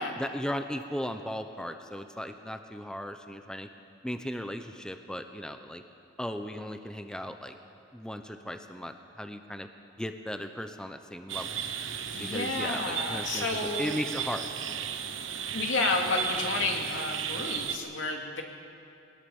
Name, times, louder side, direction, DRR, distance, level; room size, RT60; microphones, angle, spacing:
voice 1, 0.2-3.7 4.0-5.8 6.2-7.6 7.9-9.7 10.0-11.6 12.2-14.5, equal, 5° left, 7 dB, 0.8 m, -36 dB
sound 1, 11.3-17.8, right 8 dB, 85° right, 1.1 m, -35 dB
voice 2, 12.1-14.0 15.2-15.3 15.5-18.4, left 3 dB, 85° left, 1 dB, 2.6 m, -31 dB
21.0 x 19.0 x 7.1 m, 2.5 s
head